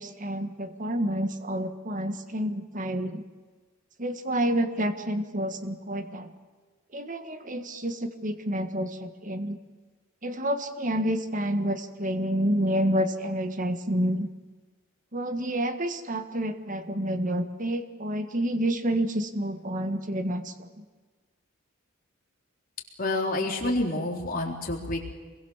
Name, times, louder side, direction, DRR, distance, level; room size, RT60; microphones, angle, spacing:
voice 1, 0.0-3.2 4.0-6.3 6.9-9.6 10.2-14.3 15.1-20.8, right 1 dB, 40° right, 8 dB, 1.7 m, -29 dB
voice 2, 23.0-25.0, left 2 dB, 45° left, 0 dB, 3.9 m, -28 dB
26.0 x 22.0 x 7.3 m, 1.4 s
head